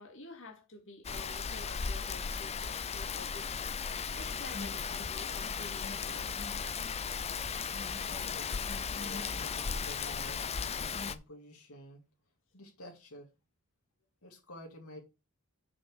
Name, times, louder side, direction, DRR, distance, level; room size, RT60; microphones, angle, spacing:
voice 1, 0.0-6.3, left 2 dB, 60° left, 2.6 m, -50 dB
Rain, 1.0-11.1, left 6 dB, 30° left, 0.5 m, -36 dB
voice 2, 7.8-10.4 10.9-12.0 12.5-13.3 14.2-15.0, left 1 dB, 80° left, 2.4 m, -50 dB
6.2 x 6.1 x 6.7 m
head